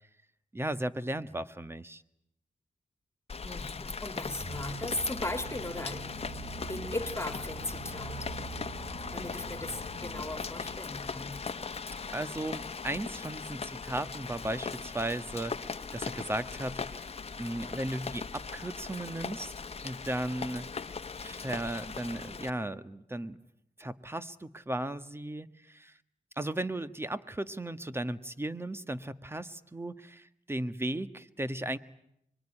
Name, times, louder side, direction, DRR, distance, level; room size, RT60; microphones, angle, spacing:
voice 1, 0.5-2.0 9.2-9.3 12.1-17.1 17.4-20.7 21.2-23.4 23.8-26.0 26.4-31.8, right 1 dB, 15° right, 1.4 m, -36 dB
Rain, 3.3-22.5, left 5 dB, 45° left, 1.2 m, -39 dB
voice 2, 3.4-6.1 6.7-8.5 9.1-11.4, left 2 dB, 20° left, 2.8 m, -37 dB
sound 1, 4.4-11.6, right 5 dB, 85° right, 6.0 m, -46 dB
25.0 x 23.0 x 10.0 m
cardioid pair, 70°, 14 cm